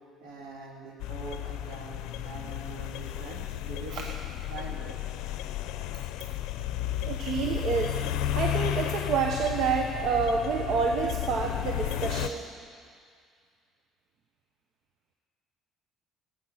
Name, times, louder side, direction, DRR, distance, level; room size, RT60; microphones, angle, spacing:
voice 1, 0.2-4.1 4.5-5.1, right 4 dB, 85° right, -1 dB, 2.4 m, -43 dB
sound 1, 1.0-12.3, left 12 dB, 80° left, 0.5 m, -33 dB
voice 2, 7.0-8.0 8.3-12.5, right 5 dB, 65° right, 2 dB, 1.0 m, -28 dB
15.0 x 9.5 x 6.4 m, 2.1 s
supercardioid pair, 85°, 0 cm